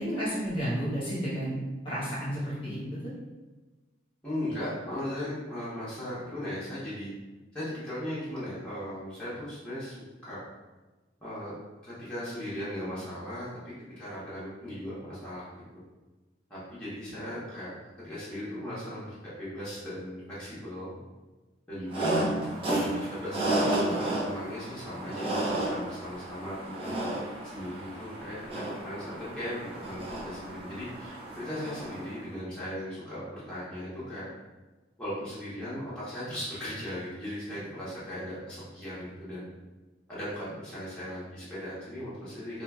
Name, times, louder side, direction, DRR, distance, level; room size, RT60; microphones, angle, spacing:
voice 1, 0.0-1.6 1.8-3.1 22.0-22.3, equal, 25° left, -9 dB, 1.1 m, -32 dB
voice 2, 4.2-7.1 7.5-10.0 10.2-10.4 11.2-11.5 11.8-13.5 14.0-15.6 16.5-17.7 18.0-21.0 21.7-22.4 22.7-34.2 35.0-39.4 40.1-42.6, equal, 5° left, -12 dB, 1.1 m, -38 dB
sound 1, 21.9-32.2, right 1 dB, 30° right, 0.8 m, -32 dB
4.8 x 2.5 x 2.3 m, 1.2 s
head